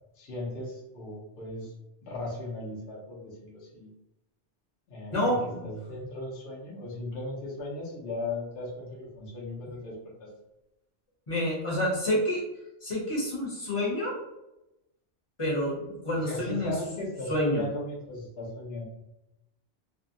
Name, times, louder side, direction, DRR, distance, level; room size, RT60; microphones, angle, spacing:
voice 1, 0.1-1.7 2.0-3.9 4.9-5.4 5.6-10.3 16.2-18.8, left 2 dB, 60° left, -4 dB, 0.9 m, -37 dB
voice 2, 5.1-5.7 11.3-12.4 12.8-14.1 15.4-16.7 17.3-17.6, equal, 30° left, -5 dB, 0.8 m, -28 dB
2.6 x 2.0 x 2.5 m, 0.93 s
omnidirectional pair, 1.2 m